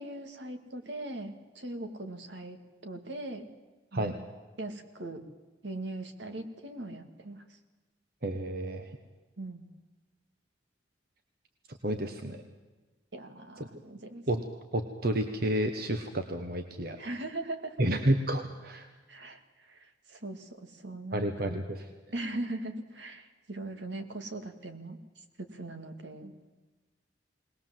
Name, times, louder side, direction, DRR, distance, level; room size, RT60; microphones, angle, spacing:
voice 1, 0.0-2.6 2.8-3.5 3.9-4.2 4.6-5.3 5.6-7.4 9.4-9.7 13.1-14.2 17.0-17.8 19.1-21.6 22.1-26.5, right 2 dB, 75° right, 7 dB, 2.1 m, -40 dB
voice 2, 8.2-8.9 11.7-12.4 13.6-13.8 14.3-14.4 14.7-17.0 17.8-18.9 21.1-21.8, right 1 dB, 55° right, 6 dB, 1.2 m, -30 dB
20.0 x 20.0 x 7.6 m, 1.2 s
head